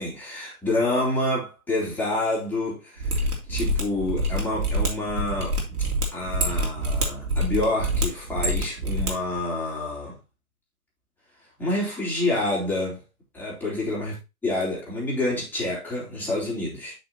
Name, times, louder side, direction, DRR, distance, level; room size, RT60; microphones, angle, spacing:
voice 1, 0.0-3.2 3.5-5.6 6.1-10.2 11.6-13.0 13.3-14.1 14.4-16.9, left 2 dB, 5° left, 3.9 m, -28 dB
Mechanisms, 3.0-9.1 9.4-9.5, right 1 dB, 75° right, 3.2 m, -26 dB
7.9 x 6.2 x 3.0 m
hypercardioid pair, 130°, 44 cm